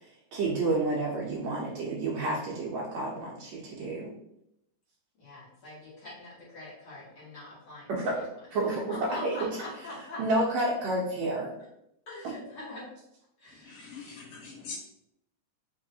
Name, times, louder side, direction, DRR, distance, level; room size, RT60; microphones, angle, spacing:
voice 1, 0.3-4.1 7.9-8.8 9.1-9.5 10.2-11.5 12.2-12.3, right 2 dB, 75° right, -4 dB, 1.7 m, -30 dB
voice 2, 5.2-8.1 8.5-10.2 12.1-12.8 13.4-13.8, left 2 dB, 50° left, -9 dB, 2.1 m, -43 dB
voice 3, 13.6-14.8, left 5 dB, 80° left, -3 dB, 2.7 m, -43 dB
5.6 x 3.0 x 2.7 m, 0.79 s
omnidirectional pair, 3.7 m